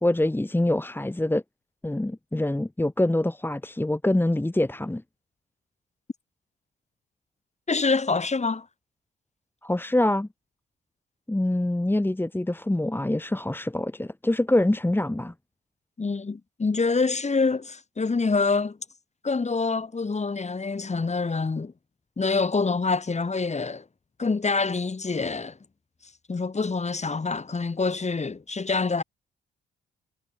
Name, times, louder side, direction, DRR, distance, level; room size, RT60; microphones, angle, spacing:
voice 1, 0.0-1.4 1.8-5.0 9.6-10.3 11.3-15.3, left 1 dB, 10° left, 1.7 m, -25 dB
voice 2, 7.7-8.7 16.0-18.8 19.2-21.7 22.2-23.8 24.2-25.6 26.3-29.0, left 4 dB, 35° left, 4.6 m, -26 dB
hypercardioid pair, 50°, 21 cm